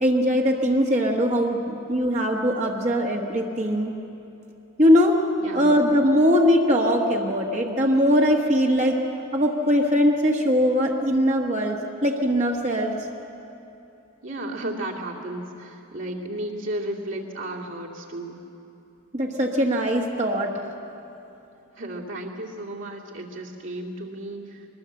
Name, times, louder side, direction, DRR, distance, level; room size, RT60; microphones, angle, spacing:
voice 1, 0.0-3.9 4.8-5.2 5.5-9.0 9.3-12.9 19.1-20.5, equal, 30° right, 0 dB, 1.2 m, -21 dB
voice 2, 14.2-18.4 21.8-24.7, right 1 dB, 60° right, -2 dB, 2.5 m, -33 dB
22.5 x 19.5 x 7.7 m, 2.9 s
head